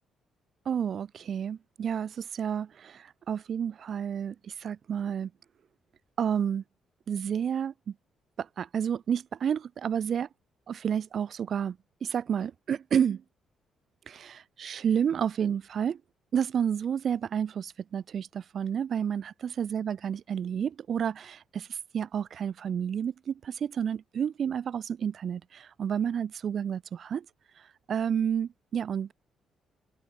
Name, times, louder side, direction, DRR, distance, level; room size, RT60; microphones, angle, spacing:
voice 1, 0.7-5.3 6.2-6.6 7.1-7.9 8.4-10.3 10.7-13.2 14.1-16.0 16.3-27.3 27.9-29.1, right 8 dB, 55° right, 5.3 m, -30 dB
open air
cardioid pair, 90°, 0 cm